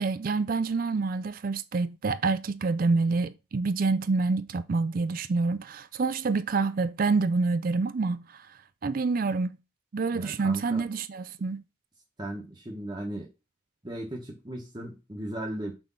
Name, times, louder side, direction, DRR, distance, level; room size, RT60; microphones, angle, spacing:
voice 1, 0.0-8.5 8.8-9.6 9.9-11.6, right 4 dB, 45° right, 0.4 m, -27 dB
voice 2, 10.1-10.8 12.2-13.3 13.8-15.7, right 1 dB, 20° right, 1.2 m, -36 dB
6.1 x 3.4 x 5.4 m
head